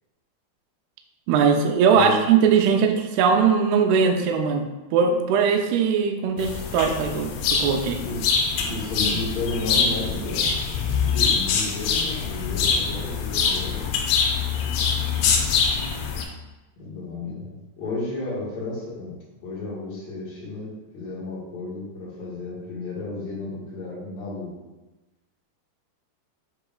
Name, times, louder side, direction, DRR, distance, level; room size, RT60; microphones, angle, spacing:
voice 1, 1.3-8.0, right 6 dB, 80° right, 4 dB, 2.5 m, -20 dB
voice 2, 1.9-2.3 8.0-10.5 11.0-14.0 15.1-15.5 16.8-19.2 19.4-24.6, left 2 dB, 55° left, -6 dB, 2.3 m, -33 dB
sound 1, 6.4-16.2, left 6 dB, 90° left, 2.0 m, -24 dB
8.9 x 4.9 x 2.3 m, 1.1 s
omnidirectional pair, 4.8 m